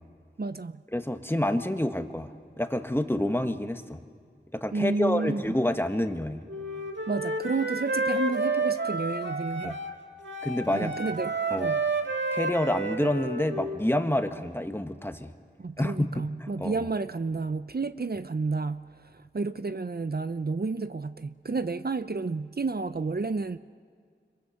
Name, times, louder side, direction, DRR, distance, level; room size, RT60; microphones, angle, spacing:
voice 1, 0.4-0.8 4.7-5.5 7.1-9.8 10.7-11.8 15.6-23.6, right 3 dB, 55° right, 12 dB, 0.6 m, -31 dB
voice 2, 0.9-4.0 4.5-6.4 9.6-9.7 10.4-10.9 11.5-11.7 12.3-15.3 15.8-16.2 16.6-16.9, left 1 dB, 10° left, 7 dB, 1.4 m, -28 dB
Wind instrument woodwind instrument, 6.5-10.0 10.2-13.8, right 3 dB, 75° right, 1.7 m, -30 dB
27.0 x 23.0 x 6.5 m, 2.1 s
wide cardioid pair, 45°, 19 cm